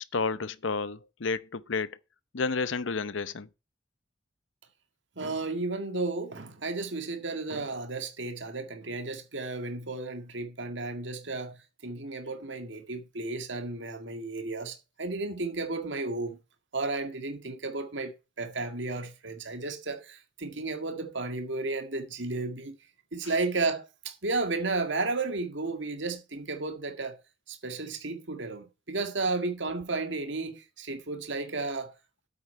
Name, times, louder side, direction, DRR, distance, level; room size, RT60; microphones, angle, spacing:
voice 1, 0.1-1.9 2.3-3.5, left 4 dB, 75° left, 0.7 m, -31 dB
voice 2, 5.2-16.4 16.7-22.8 23.1-27.2 27.5-31.9, right 3 dB, 70° right, 2.0 m, -33 dB
8.8 x 8.5 x 4.5 m
head